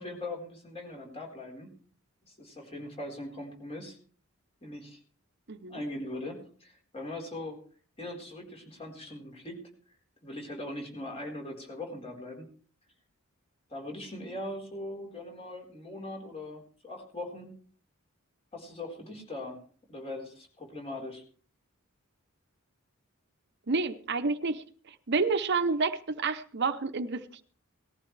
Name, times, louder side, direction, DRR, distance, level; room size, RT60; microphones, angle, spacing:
voice 1, 0.0-1.8 2.3-4.0 4.6-5.0 5.7-7.6 8.0-9.7 10.2-12.5 13.7-17.6 18.5-19.6 19.9-21.2, left 1 dB, 30° left, 1 dB, 4.4 m, -40 dB
voice 2, 5.5-5.8 23.7-27.4, right 4 dB, 55° right, 10 dB, 0.8 m, -29 dB
19.0 x 14.5 x 3.3 m, 0.43 s
head